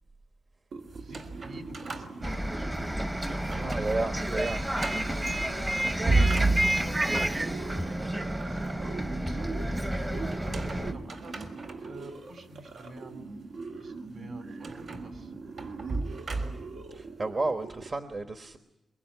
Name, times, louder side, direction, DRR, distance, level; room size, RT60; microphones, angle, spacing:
sound 1, 0.7-17.9, right 4 dB, 85° right, 2.0 m, -43 dB
sound 2, 0.9-3.0 3.4-4.0 4.3-4.4 4.8-5.2 5.8-7.1 10.3-12.1 12.7-12.9 14.6-16.9, right 2 dB, 55° right, 3.7 m, -32 dB
voice 1, 1.0-2.7 3.0-3.9 4.9-8.6 9.1-13.1 13.8-15.3, right 2 dB, 70° right, 6 dB, 5.4 m, -47 dB
Bus, 2.2-10.9, right 1 dB, 15° right, 0.8 m, -30 dB
voice 2, 3.4-4.6 16.4-16.6 16.9-18.6, right 2 dB, 40° right, 6 dB, 1.3 m, -32 dB
23.5 x 23.5 x 9.6 m, 0.97 s
wide cardioid pair, 140°, 0 cm